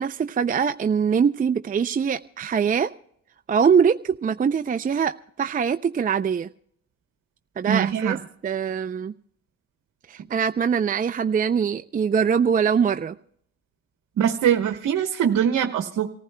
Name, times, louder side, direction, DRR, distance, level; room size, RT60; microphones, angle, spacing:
voice 1, 0.0-2.9 3.5-6.5 7.6-8.2 8.4-9.1 10.1-13.2, right 7 dB, 30° right, 9 dB, 0.5 m, -23 dB
voice 2, 7.7-8.2 14.2-16.1, right 9 dB, 70° right, 5 dB, 1.1 m, -22 dB
27.0 x 15.0 x 2.2 m, 0.68 s
cardioid pair, 90°, 30 cm